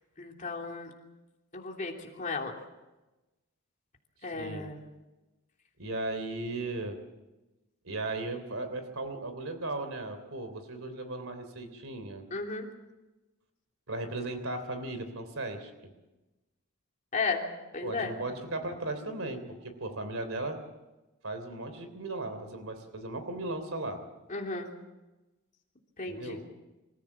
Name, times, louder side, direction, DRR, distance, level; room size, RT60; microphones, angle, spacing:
voice 1, 0.2-0.9 1.5-2.5 4.2-4.9 12.3-12.7 17.1-17.5 17.7-18.1 24.3-24.7 26.0-26.4, left 4 dB, 35° left, 1 dB, 3.1 m, -34 dB
voice 2, 4.3-4.7 5.8-7.0 7.8-12.2 13.9-15.7 17.8-20.6 21.2-24.0 26.1-26.4, right 2 dB, 65° right, 9 dB, 3.3 m, -36 dB
26.5 x 15.0 x 7.4 m, 1.1 s
head